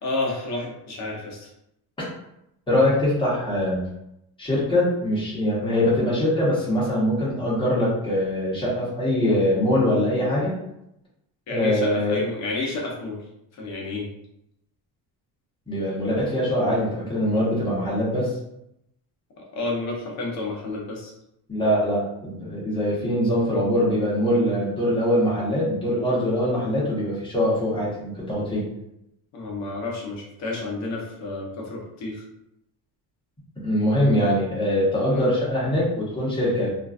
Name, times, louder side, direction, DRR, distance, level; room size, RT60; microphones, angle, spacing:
voice 1, 0.0-1.5 11.5-13.2 13.6-14.1 19.5-21.1 29.3-32.2 35.1-35.3, left 2 dB, 45° left, -2 dB, 0.7 m, -30 dB
voice 2, 2.7-3.9 4.4-10.6 11.5-12.2 15.7-18.3 21.5-28.6 33.6-36.7, left 1 dB, 10° left, -7 dB, 0.8 m, -23 dB
2.5 x 2.2 x 2.3 m, 0.80 s
cardioid pair, 165°, 40 cm